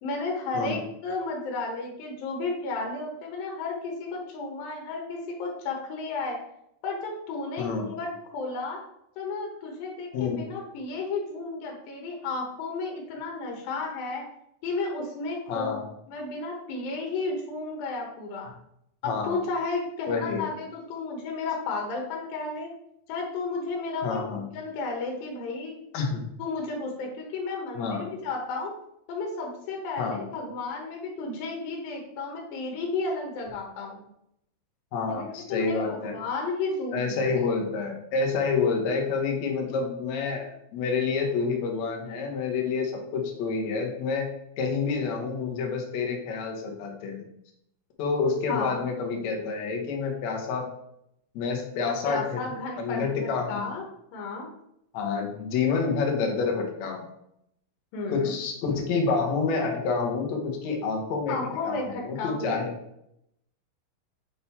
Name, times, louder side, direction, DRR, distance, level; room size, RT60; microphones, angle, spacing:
voice 1, 0.0-6.4 6.8-8.8 9.2-14.2 14.6-15.8 16.1-18.5 19.0-22.7 23.1-25.8 26.4-28.7 29.1-34.0 35.1-37.5 48.5-48.8 51.8-53.8 54.1-54.5 57.9-58.3 61.3-62.7, left 3 dB, 80° left, 0 dB, 3.0 m, -33 dB
voice 2, 7.6-7.9 10.1-10.4 15.5-15.8 19.0-19.4 20.1-20.4 24.0-24.5 25.9-26.2 27.8-28.1 30.0-30.3 34.9-36.2 36.9-44.3 44.6-47.2 48.0-50.7 51.3-52.4 52.8-53.7 54.9-57.1 58.1-61.4 61.6-62.7, left 4 dB, 60° left, 1 dB, 2.2 m, -28 dB
7.9 x 3.9 x 4.2 m, 0.78 s
omnidirectional pair, 4.0 m